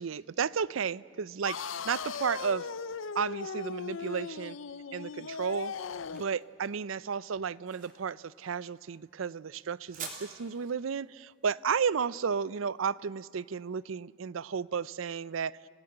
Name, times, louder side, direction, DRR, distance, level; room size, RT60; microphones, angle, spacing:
voice 1, 0.0-2.7 3.1-4.6 4.9-5.7 6.1-15.6, right 6 dB, 85° right, 21 dB, 0.5 m, -33 dB
sound 1, 1.4-6.4, left 6 dB, 75° left, 0.6 m, -38 dB
sound 2, 4.4-13.5, right 5 dB, 40° right, 3.2 m, -50 dB
30.0 x 17.5 x 8.0 m, 2.4 s
head